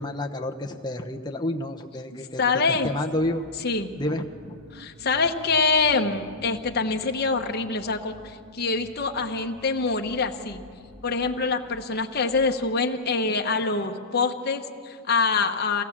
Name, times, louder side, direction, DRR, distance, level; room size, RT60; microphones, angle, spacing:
voice 1, 0.0-2.4 2.7-3.4 4.0-4.6, left 1 dB, 20° left, 2 dB, 0.9 m, -30 dB
voice 2, 2.4-2.9 3.6-3.9 4.7-10.6 11.0-15.8, left 4 dB, 45° left, 4 dB, 1.1 m, -25 dB
sound 1, 2.6-13.1, right 1 dB, 70° right, 2.4 m, -50 dB
23.5 x 17.5 x 7.3 m, 2.1 s
head